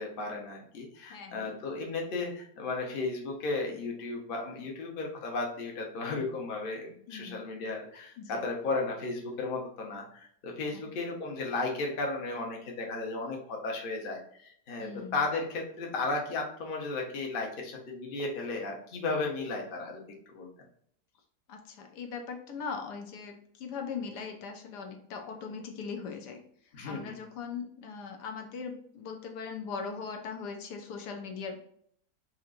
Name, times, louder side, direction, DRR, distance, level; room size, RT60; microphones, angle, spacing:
voice 1, 0.0-20.0 20.3-20.5 26.7-27.1, left 3 dB, 40° left, 0 dB, 0.9 m, -34 dB
voice 2, 1.1-1.6 7.1-7.4 8.2-8.5 10.7-10.9 14.8-15.2 21.5-31.6, left 5 dB, 75° left, 3 dB, 1.3 m, -40 dB
4.7 x 2.8 x 2.4 m, 0.65 s
omnidirectional pair, 1.8 m